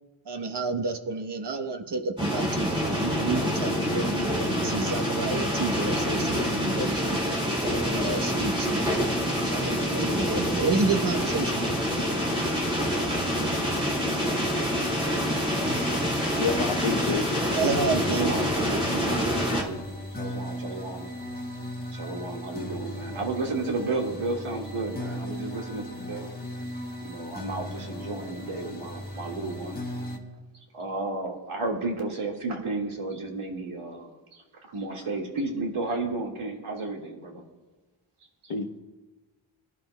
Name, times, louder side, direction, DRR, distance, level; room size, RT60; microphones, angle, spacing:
voice 1, 0.3-7.2 7.8-8.8 9.1-11.9 17.5-18.4, right 4 dB, 55° right, 8 dB, 1.0 m, -30 dB
sound 1, 2.2-19.6, equal, 10° right, 2.7 m, -26 dB
sound 2, 15.7-30.2, left 1 dB, 20° left, 1.3 m, -37 dB
voice 2, 16.4-17.2 38.5-38.8, left 5 dB, 85° left, 6 dB, 1.0 m, -28 dB
voice 3, 18.1-19.8 20.2-21.1 21.9-26.3 27.0-29.8 30.7-34.4 34.7-37.4 38.4-38.5, right 3 dB, 85° right, 0 dB, 1.9 m, -33 dB
22.5 x 11.0 x 2.2 m, 1.2 s
wide cardioid pair, 105°, 49 cm